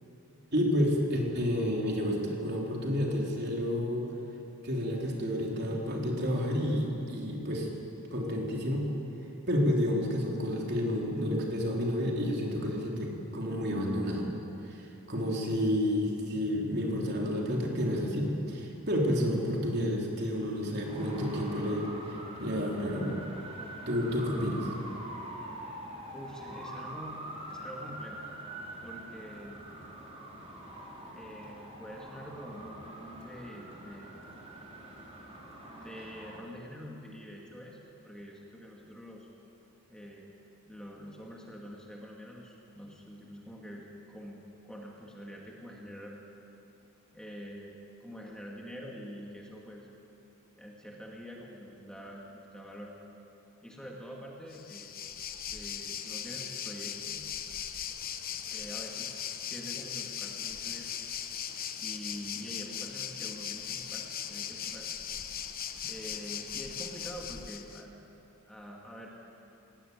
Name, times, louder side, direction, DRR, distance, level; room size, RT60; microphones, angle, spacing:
voice 1, 0.5-4.1 4.6-7.7 8.1-8.9 9.5-14.3 14.7-21.9 22.4-23.2 23.9-24.7, equal, 50° right, -1 dB, 3.8 m, -30 dB
Traffic noise roadway noise, 20.8-36.4, right 1 dB, 30° right, 4.1 m, -44 dB
voice 2, 26.1-27.2 27.5-28.2 28.8-29.6 31.1-34.1 35.6-37.8 38.0-39.3 39.9-40.3 40.7-44.4 44.6-46.2 47.1-49.9 50.6-52.9 53.6-54.9 55.5-57.2 58.4-59.2 59.5-60.9 61.8-64.9 65.8-68.0 68.5-69.1, equal, 5° left, -2 dB, 2.2 m, -46 dB
Waves surf, 54.5-67.8, left 9 dB, 40° left, 1.1 m, -39 dB
21.0 x 18.0 x 9.6 m, 2.8 s
head